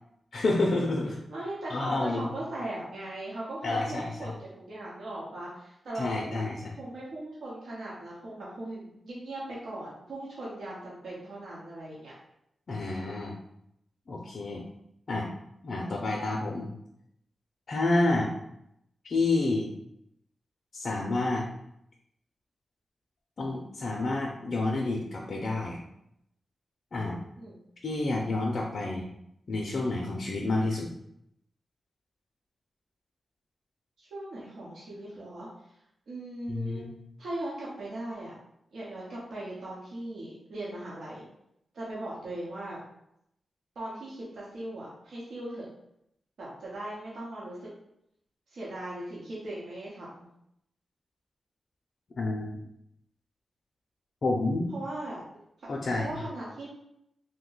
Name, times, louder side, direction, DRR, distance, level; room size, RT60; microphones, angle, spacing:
voice 1, 0.3-1.1 1.7-2.3 3.6-4.3 6.0-6.7 12.7-13.4 14.1-14.6 15.1-15.3 15.6-16.7 17.7-18.3 19.0-19.7 20.7-21.4 23.4-25.8 26.9-27.2 27.8-29.1 29.5-30.9 36.5-36.9 52.1-52.5 54.2-54.7 55.7-56.1, left 2 dB, 60° left, -2 dB, 0.5 m, -29 dB
voice 2, 1.3-6.5 6.8-12.1 27.4-27.6 34.0-35.5 36.1-36.9 37.2-38.3 38.7-41.2 41.7-42.8 43.7-45.7 46.4-47.7 48.5-50.3 54.7-55.2 55.6-55.7 56.0-56.7, right 1 dB, 80° right, -7 dB, 0.9 m, -39 dB
2.7 x 2.2 x 3.9 m, 0.78 s
cardioid pair, 55°, 0 cm